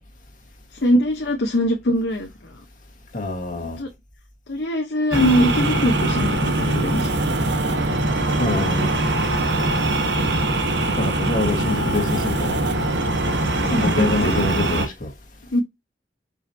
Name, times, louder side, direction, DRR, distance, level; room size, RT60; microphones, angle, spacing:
voice 1, 0.7-2.5 3.8-3.9 4.5-7.1 9.7-10.0 13.6-14.5 15.5-15.6, equal, 80° left, 0.8 m, -22 dB
voice 2, 3.1-3.8 8.4-8.9 11.0-12.6 13.6-15.1, left 2 dB, 50° left, 1.3 m, -25 dB
sound 1, 5.1-14.9, right 2 dB, 80° right, 1.1 m, -22 dB
4.8 x 4.1 x 2.6 m
head